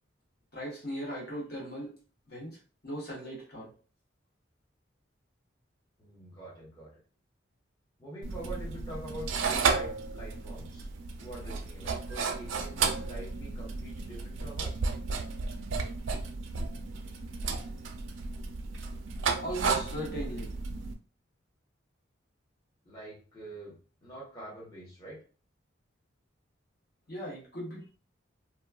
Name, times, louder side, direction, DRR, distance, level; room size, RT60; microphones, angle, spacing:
voice 1, 0.5-1.9 2.3-2.6 2.8-3.7 19.4-20.5 27.1-27.9, equal, 50° left, -4 dB, 1.1 m, -38 dB
voice 2, 6.0-6.9 8.0-10.9 11.2-14.8 22.8-23.7 24.0-25.2, right 1 dB, 20° left, -7 dB, 0.9 m, -45 dB
sound 1, 8.2-20.9, right 4 dB, 75° right, 0.4 m, -33 dB
3.0 x 2.2 x 2.3 m, 0.37 s
head